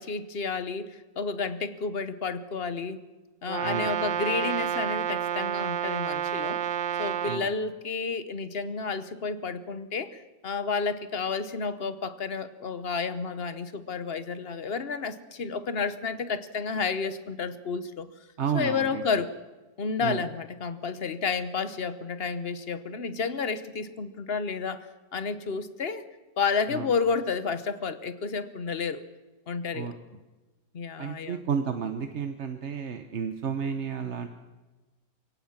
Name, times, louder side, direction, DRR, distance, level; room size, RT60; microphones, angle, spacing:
voice 1, 0.0-3.0 3.4-6.6 7.0-18.1 18.5-19.3 19.8-24.9 25.1-26.0 26.4-29.0 29.5-29.9 30.7-31.4, left 5 dB, 40° left, 12 dB, 1.0 m, -31 dB
Brass instrument, 3.5-7.5, right 9 dB, 70° right, 1.5 m, -29 dB
voice 2, 3.6-3.9 7.3-7.5 18.4-19.0 20.0-20.2 26.7-26.9 29.7-29.9 31.0-34.3, right 7 dB, 45° right, 7 dB, 1.1 m, -32 dB
23.0 x 17.0 x 7.3 m, 1.2 s
omnidirectional pair, 2.1 m